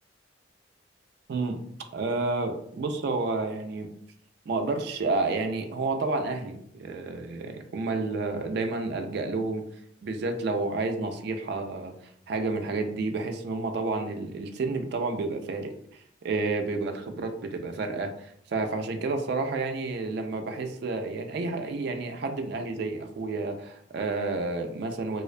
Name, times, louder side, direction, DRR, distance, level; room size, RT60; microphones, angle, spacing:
voice 1, 1.9-3.9 4.5-9.6 10.0-11.9 12.3-15.7 16.2-25.2, right 3 dB, 55° right, 5 dB, 0.3 m, -30 dB
2.4 x 2.2 x 2.4 m, 0.69 s
head